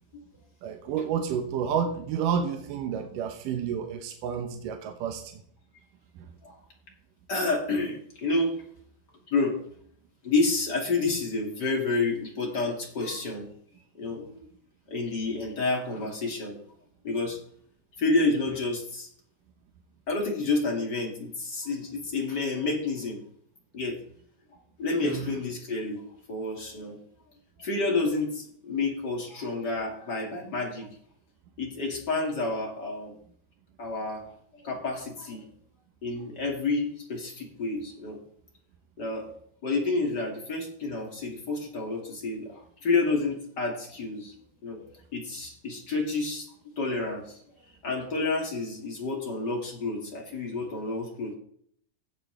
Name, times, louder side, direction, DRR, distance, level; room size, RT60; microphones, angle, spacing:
voice 1, 0.6-5.4 25.0-25.3, right 7 dB, 70° right, 5 dB, 2.1 m, -30 dB
voice 2, 7.3-8.5 9.3-9.6 10.2-13.5 14.0-14.4 14.9-16.6 17.0-17.4 18.0-19.1 20.1-23.2 23.7-24.0 24.8-26.0 26.3-27.0 27.6-30.9 31.6-33.2 33.8-34.2 34.5-35.5 36.0-38.2 39.0-39.3 39.6-44.3 44.6-46.5 46.8-47.2 47.8-51.3, left 3 dB, 35° left, -1 dB, 2.0 m, -29 dB
16.0 x 8.3 x 3.4 m, 0.63 s
omnidirectional pair, 4.9 m